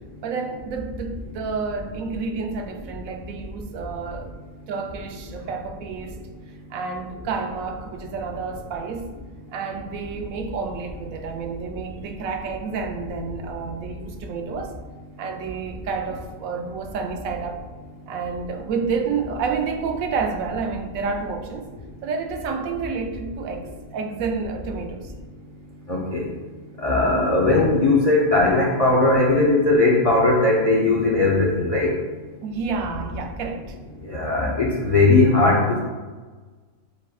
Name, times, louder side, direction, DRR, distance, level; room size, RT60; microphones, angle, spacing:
voice 1, 0.2-4.3 4.7-6.2 6.7-9.1 9.5-14.7 15.2-17.6 18.1-21.7 22.0-25.1 32.4-33.8, right 5 dB, 85° right, 5 dB, 1.0 m, -29 dB
voice 2, 25.9-26.3 26.8-31.9 34.0-35.8, left 2 dB, 60° left, -4 dB, 0.3 m, -18 dB
4.8 x 4.2 x 2.3 m, 1.4 s
omnidirectional pair, 1.4 m